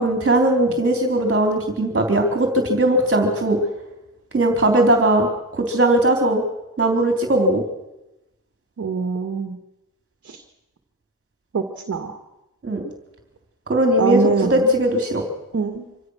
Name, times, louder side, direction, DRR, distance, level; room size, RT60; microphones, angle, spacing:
voice 1, 0.0-3.6 4.3-6.4 6.8-7.6 12.6-12.8 13.7-15.2, right 1 dB, 35° right, 4 dB, 3.3 m, -19 dB
voice 2, 8.8-9.6 10.2-10.4 11.5-12.2 14.0-14.7 15.5-15.9, right 5 dB, 55° right, 6 dB, 2.0 m, -24 dB
25.0 x 16.5 x 6.3 m, 0.96 s
wide cardioid pair, 100°, 31 cm